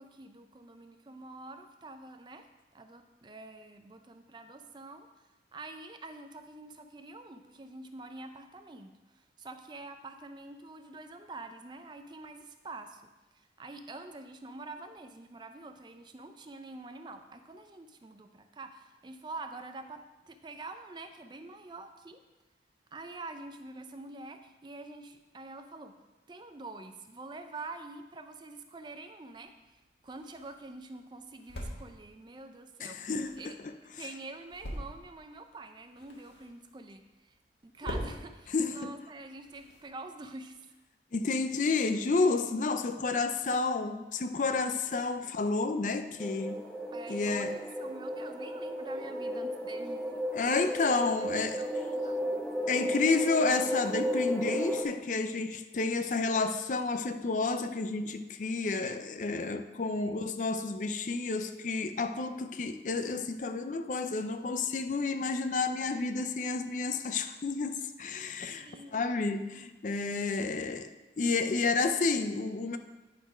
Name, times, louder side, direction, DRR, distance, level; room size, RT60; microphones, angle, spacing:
voice 1, 0.0-22.2 22.9-26.0 26.3-29.5 30.0-33.0 33.4-33.5 34.0-37.4 37.6-40.7 45.2-45.3 46.9-50.2 51.2-52.4 59.9-60.2 68.4-69.0, right 2 dB, 25° right, 7 dB, 0.4 m, -46 dB
sound 1, 29.3-40.5, equal, 85° left, 1.6 m, -46 dB
voice 2, 32.8-34.1 38.5-38.9 41.1-46.6 47.1-47.6 50.3-51.6 52.7-70.9 71.2-72.8, left 3 dB, 45° left, 9 dB, 0.4 m, -30 dB
sound 2, 46.2-54.8, equal, 5° left, 0.7 m, -34 dB
10.0 x 4.0 x 4.9 m, 1.2 s
head